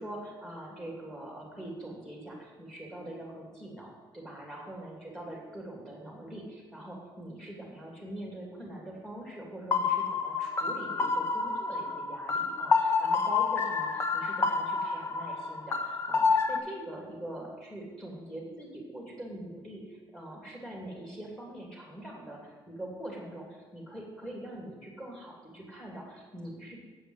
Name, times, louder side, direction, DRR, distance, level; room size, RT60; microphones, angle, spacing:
voice 1, 0.0-26.8, right 1 dB, 5° left, -2 dB, 2.7 m, -43 dB
sound 1, 9.7-16.6, left 4 dB, 30° left, 0.7 m, -28 dB
9.3 x 7.7 x 8.0 m, 1.3 s
cardioid pair, 175°, 9 cm